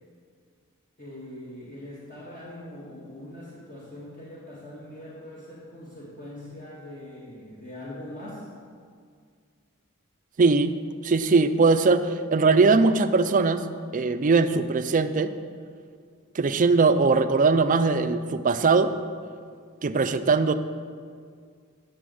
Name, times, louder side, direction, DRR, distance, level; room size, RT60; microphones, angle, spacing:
voice 1, 1.0-8.5, left 1 dB, 40° left, -7 dB, 1.8 m, -42 dB
voice 2, 10.4-10.8 11.0-13.7 13.9-15.3 16.3-18.9 19.8-20.5, right 4 dB, 40° right, 10 dB, 0.4 m, -20 dB
8.4 x 7.4 x 7.6 m, 2.1 s
head